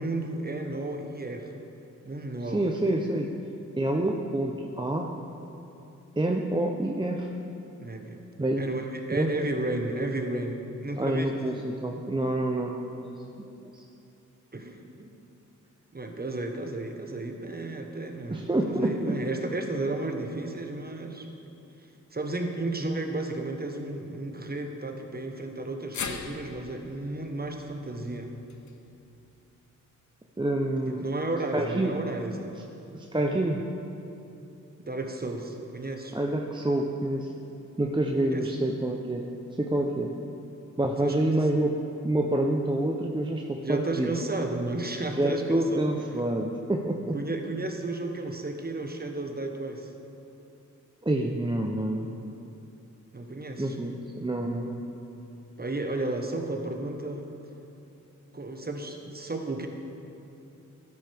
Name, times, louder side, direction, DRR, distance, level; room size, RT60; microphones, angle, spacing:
voice 1, 0.0-1.5 2.0-2.6 7.8-8.2 8.6-11.3 14.5-15.1 15.9-21.3 22.1-28.3 30.9-32.6 34.8-36.2 38.2-38.5 41.0-41.4 43.6-46.1 47.1-49.9 53.1-53.8 55.6-57.3 58.3-59.7, right 2 dB, 30° right, 4 dB, 1.3 m, -33 dB
voice 2, 2.5-3.3 3.8-5.1 6.2-7.3 8.4-8.7 9.1-9.3 10.9-13.1 13.4-13.5 13.7-13.8 18.3-18.9 30.4-31.0 31.5-31.9 32.9-33.6 36.1-37.3 37.8-39.3 39.6-40.1 40.8-41.8 42.0-44.1 45.2-47.2 51.0-52.1 53.6-54.8, right 1 dB, 15° right, 1 dB, 0.7 m, -27 dB
sound 1, 25.9-30.2 30.6-30.7 31.8-31.9, left 5 dB, 65° left, 0.8 m, -42 dB
12.5 x 9.6 x 3.5 m, 2.8 s
cardioid pair, 50°, 31 cm